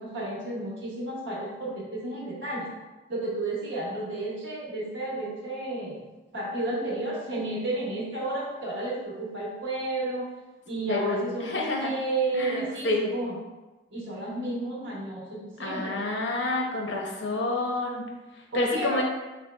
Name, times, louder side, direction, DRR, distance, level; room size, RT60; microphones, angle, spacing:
voice 1, 0.0-2.7 3.1-6.0 6.3-10.3 10.7-13.3 13.9-16.0 18.5-19.0, right 2 dB, 80° right, -5 dB, 1.2 m, -32 dB
voice 2, 10.9-11.9 12.3-13.1 15.6-18.0 18.3-19.0, left 2 dB, 75° left, 0 dB, 0.7 m, -29 dB
4.3 x 3.6 x 2.2 m, 1.1 s
head